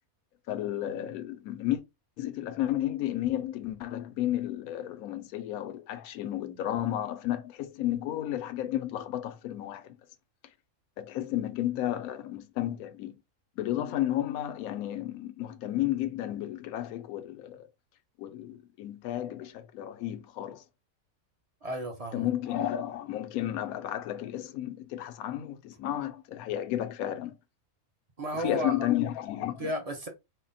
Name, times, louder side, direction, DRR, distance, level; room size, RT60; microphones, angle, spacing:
voice 1, 0.5-1.8 2.2-9.9 11.0-13.1 13.6-17.7 18.2-20.6 22.1-27.3 28.3-29.7, left 12 dB, 85° left, 1.0 m, -32 dB
voice 2, 21.6-22.3 28.2-28.9 29.6-30.1, equal, 35° right, 0.6 m, -33 dB
4.1 x 2.1 x 4.0 m
omnidirectional pair, 1.5 m